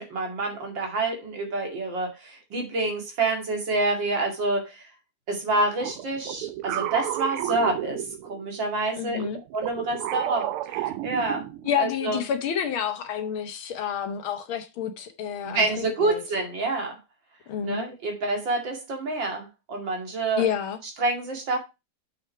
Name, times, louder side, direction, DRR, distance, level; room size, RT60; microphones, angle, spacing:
voice 1, 0.0-4.8 5.3-8.0 8.3-9.2 9.5-11.5 11.8-12.2 15.4-17.0 17.6-20.5 21.0-21.6, right 2 dB, 60° right, 3.0 m, -27 dB
sound 1, 5.8-8.5 9.1-11.8, right 13 dB, 90° right, 1.6 m, -32 dB
voice 2, 9.0-9.4 11.7-16.2 17.5-17.9 20.4-20.8, left 8 dB, 75° left, 1.8 m, -29 dB
7.3 x 6.3 x 4.4 m
omnidirectional pair, 2.3 m